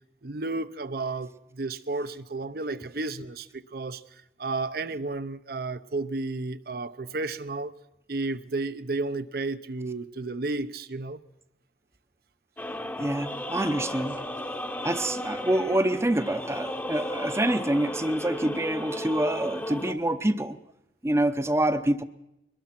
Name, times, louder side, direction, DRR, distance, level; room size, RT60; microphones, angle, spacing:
voice 1, 0.2-4.0 4.4-7.7 8.1-11.2 19.9-20.0, right 3 dB, 60° right, 0.8 m, -32 dB
sound 1, 12.6-19.9, left 1 dB, 10° left, 0.9 m, -34 dB
voice 2, 13.0-14.2 14.8-20.6 21.0-22.0, right 1 dB, 15° right, 0.7 m, -26 dB
22.5 x 19.5 x 5.9 m
head